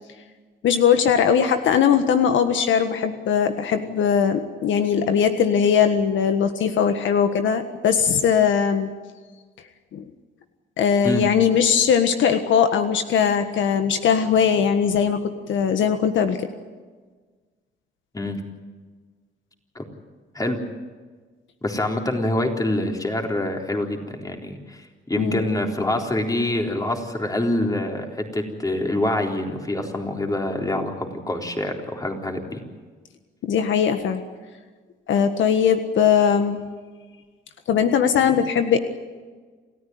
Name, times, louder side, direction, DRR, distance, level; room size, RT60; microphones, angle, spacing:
voice 1, 0.6-8.9 9.9-10.0 10.8-16.5 25.2-25.4 33.4-34.2 35.1-36.6 37.7-38.8, left 7 dB, 75° left, 8 dB, 1.5 m, -20 dB
voice 2, 21.6-32.6, left 1 dB, 15° left, 2 dB, 3.9 m, -25 dB
28.5 x 14.0 x 9.5 m, 1.4 s
cardioid pair, 90°, 20 cm